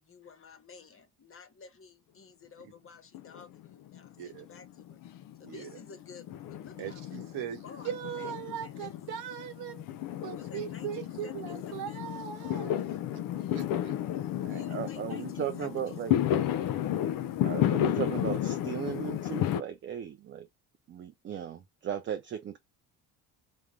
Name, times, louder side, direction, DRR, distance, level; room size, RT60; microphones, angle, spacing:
voice 1, 0.0-5.0 5.4-7.0 7.6-9.1 10.3-12.1 14.5-16.2, left 5 dB, 30° left, 0.9 m, -52 dB
Fireworks, 3.1-4.1 4.3-19.6, left 11 dB, 55° left, 0.5 m, -32 dB
voice 2, 6.8-12.8 13.5-13.9, right 10 dB, 65° right, 0.9 m, -39 dB
voice 3, 14.4-16.1 17.4-20.5 20.9-22.6, right 9 dB, 30° right, 0.4 m, -36 dB
3.6 x 2.1 x 3.0 m
supercardioid pair, 75°, 41 cm